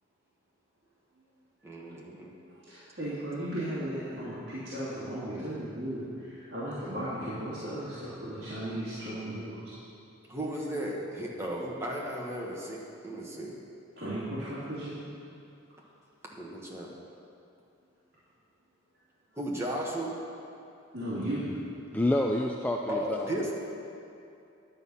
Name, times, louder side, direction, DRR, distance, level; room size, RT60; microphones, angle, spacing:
voice 1, 1.6-2.3 10.3-13.6 16.3-16.9 19.4-20.1 22.9-23.5, right 1 dB, 15° right, -3 dB, 1.2 m, -35 dB
voice 2, 2.5-9.7 14.0-15.0 20.9-21.5, right 1 dB, 50° right, -12 dB, 2.7 m, -36 dB
voice 3, 21.9-23.5, left 1 dB, 10° left, 0 dB, 0.3 m, -28 dB
10.5 x 8.0 x 5.6 m, 2.7 s
head